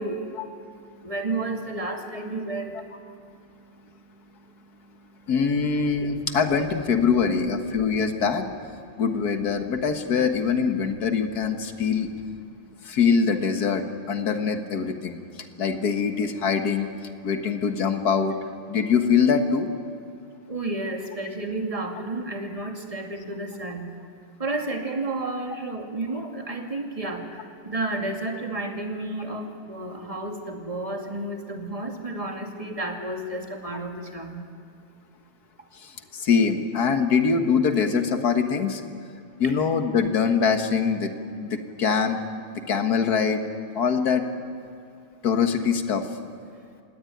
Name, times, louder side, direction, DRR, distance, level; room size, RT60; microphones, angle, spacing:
voice 1, 0.0-5.3 6.1-6.2 8.9-9.0 11.7-11.8 12.5-12.8 20.5-23.9 24.4-34.4 35.6-35.7, right 2 dB, 15° right, 2 dB, 2.4 m, -32 dB
voice 2, 5.3-8.5 9.0-12.1 12.8-15.2 15.6-16.9 17.2-18.4 18.7-19.7 35.8-38.8 39.4-41.1 41.4-42.2 42.7-43.4 43.7-44.3 45.2-46.1, left 6 dB, 50° left, 6 dB, 2.0 m, -23 dB
26.5 x 19.0 x 9.4 m, 2.4 s
omnidirectional pair, 2.3 m